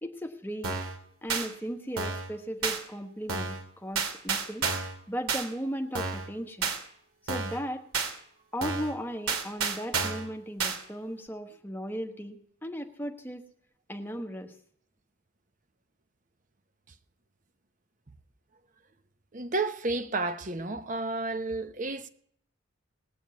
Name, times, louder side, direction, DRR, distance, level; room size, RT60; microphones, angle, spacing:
voice 1, 0.0-0.8 1.2-4.7 5.1-6.7 7.2-7.8 8.5-13.4 13.9-14.5, equal, 10° left, 1.2 m, -36 dB
sound 1, 0.6-0.9 1.3-1.5 2.0-2.3 2.6-2.8 3.3-3.6 4.0-4.9 5.3-5.4 5.9-6.3 6.6-6.8 7.3-7.6 7.9-8.1 8.6-8.9 9.3-10.3 10.6-10.8, right 5 dB, 90° right, 2.6 m, -30 dB
voice 2, 19.3-22.1, right 3 dB, 40° right, 0.9 m, -31 dB
19.0 x 7.1 x 8.3 m
head